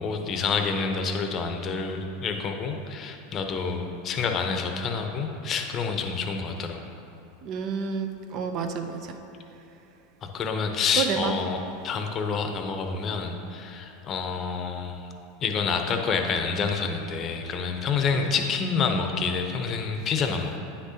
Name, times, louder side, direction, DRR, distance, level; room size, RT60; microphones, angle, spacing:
voice 1, 0.0-6.8 10.2-11.6 11.8-15.0 15.4-20.6, left 5 dB, 40° left, 5 dB, 0.8 m, -28 dB
voice 2, 7.4-9.2 10.9-11.3 18.1-18.3, right 6 dB, 50° right, 5 dB, 0.7 m, -30 dB
9.6 x 6.2 x 2.8 m, 2.8 s
hypercardioid pair, 95°, 0 cm